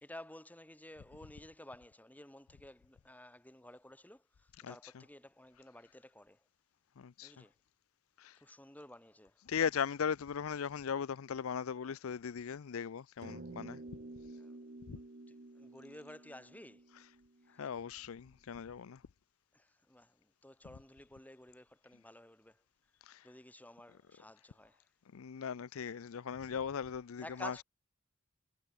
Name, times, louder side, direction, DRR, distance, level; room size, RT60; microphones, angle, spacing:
voice 1, 0.0-4.2 4.7-6.4 7.2-7.5 8.4-9.3 14.4-14.5 15.3-16.8 19.5-20.1 20.4-22.6 23.2-24.8 27.2-27.6, left 1 dB, 10° left, 2.7 m, -52 dB
voice 2, 7.0-7.3 8.2-8.4 9.5-13.8 14.9-15.0 17.6-19.0 23.1-23.3 25.1-27.6, left 7 dB, 75° left, 0.5 m, -38 dB
sound 1, 13.2-17.9, right 2 dB, 45° right, 1.3 m, -51 dB
head